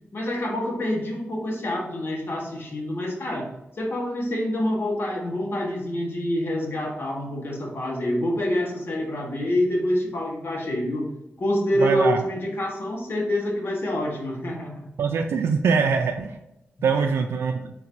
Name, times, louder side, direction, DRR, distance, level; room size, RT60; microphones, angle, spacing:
voice 1, 0.1-3.5 3.7-11.1 11.4-14.8 16.9-17.1, left 1 dB, 60° left, -1 dB, 1.3 m, -26 dB
voice 2, 11.8-12.2 15.0-16.4 16.8-17.7, right 5 dB, 90° right, 3 dB, 0.3 m, -23 dB
4.4 x 3.9 x 2.6 m, 0.89 s
cardioid pair, 60°, 4 cm